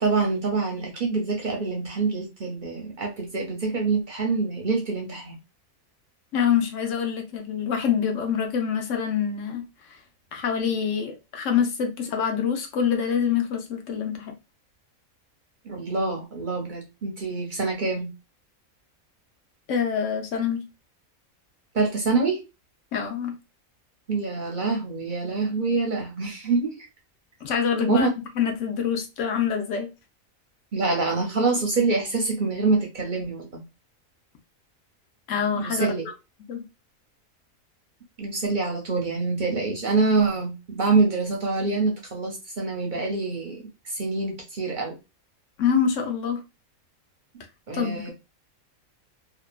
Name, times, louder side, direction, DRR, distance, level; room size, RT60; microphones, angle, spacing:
voice 1, 0.0-5.3 15.6-18.1 21.7-22.4 24.1-26.9 27.8-28.1 30.7-33.6 35.5-36.1 38.2-45.0 47.7-48.1, right 3 dB, 50° right, 0.6 m, -25 dB
voice 2, 6.3-9.7 10.3-14.3 19.7-20.6 22.9-23.4 27.4-28.1 28.4-29.9 35.3-35.9 36.5-36.6 45.6-46.4 47.7-48.1, left 7 dB, 65° left, 0.9 m, -25 dB
2.8 x 2.2 x 2.2 m
omnidirectional pair, 1.5 m